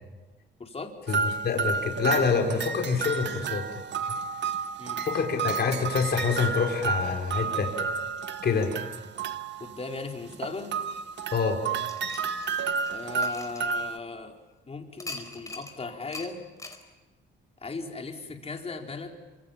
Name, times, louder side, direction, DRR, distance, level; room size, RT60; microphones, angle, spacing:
voice 1, 0.6-1.1 4.8-5.1 9.6-10.7 12.9-14.4 14.7-16.4 17.6-19.2, left 3 dB, 30° left, 3 dB, 4.3 m, -37 dB
sound 1, 1.1-9.8 10.3-14.0, right 5 dB, 65° right, 1.5 m, -31 dB
voice 2, 1.4-3.6 5.0-7.7 8.4-8.7 11.3-11.6, left 5 dB, 55° left, 2 dB, 5.1 m, -26 dB
sound 2, 11.9-14.3 15.0-15.8 16.1-16.3 16.6-16.8, left 2 dB, 15° left, 4.7 m, -41 dB
27.5 x 26.0 x 7.4 m, 1.2 s
cardioid pair, 90°, 20 cm